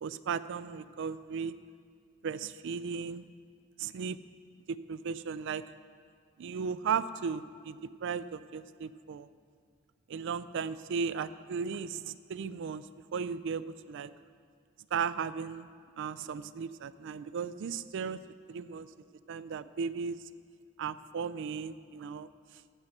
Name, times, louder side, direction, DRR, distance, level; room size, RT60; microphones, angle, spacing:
voice 1, 0.0-1.5 2.2-3.2 3.8-4.2 4.7-5.6 6.4-9.3 10.1-14.1 14.9-15.7 16.0-18.2 18.5-18.9 19.3-20.3 20.8-22.6, right 6 dB, 65° right, 15 dB, 0.4 m, -36 dB
15.5 x 5.5 x 6.0 m, 2.1 s
head